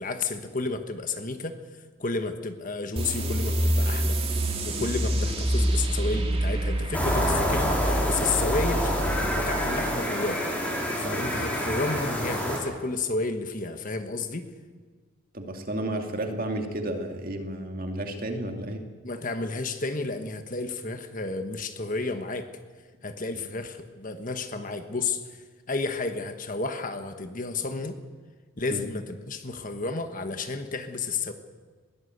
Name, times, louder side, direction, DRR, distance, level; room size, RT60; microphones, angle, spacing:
voice 1, 0.0-1.6 2.0-4.2 4.6-10.5 10.9-14.5 19.0-22.5 23.0-28.0 28.6-31.3, left 3 dB, 40° left, 8 dB, 1.3 m, -31 dB
sound 1, 3.0-10.1, right 1 dB, 25° right, 2.5 m, -27 dB
sound 2, 6.9-12.6, equal, 5° left, 4.2 m, -27 dB
voice 2, 15.3-18.8 28.7-28.8, right 1 dB, 40° right, 4 dB, 2.4 m, -32 dB
21.5 x 17.0 x 8.1 m, 1.5 s
head